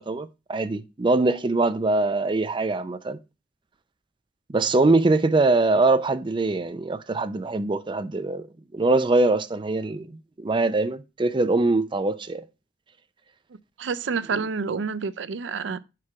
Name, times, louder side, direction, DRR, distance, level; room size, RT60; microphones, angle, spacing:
voice 1, 0.0-3.2 4.5-8.5 8.7-12.5, right 2 dB, 25° right, 0.4 m, -23 dB
voice 2, 13.8-15.8, right 5 dB, 80° right, 0.5 m, -28 dB
4.9 x 4.6 x 5.7 m
head